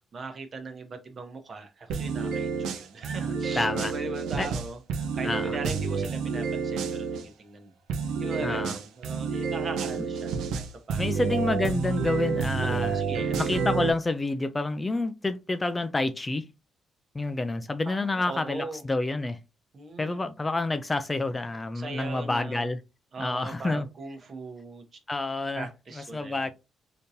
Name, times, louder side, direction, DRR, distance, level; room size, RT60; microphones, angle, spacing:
voice 1, 0.1-7.7 8.2-11.2 12.6-13.6 17.8-18.8 19.7-20.2 21.7-22.7 23.1-24.8 25.5-26.5, right 3 dB, 45° right, 0.9 m, -40 dB
sound 1, 1.9-7.2 7.9-13.9, right 5 dB, 90° right, 0.5 m, -29 dB
voice 2, 3.6-3.9 4.4-4.5 5.2-5.6 8.4-8.7 11.0-16.5 17.1-19.4 20.0-22.8 23.2-23.9 25.1-25.7 26.0-26.5, left 2 dB, 20° left, 0.3 m, -28 dB
3.6 x 2.8 x 2.6 m
cardioid pair, 90°, 0 cm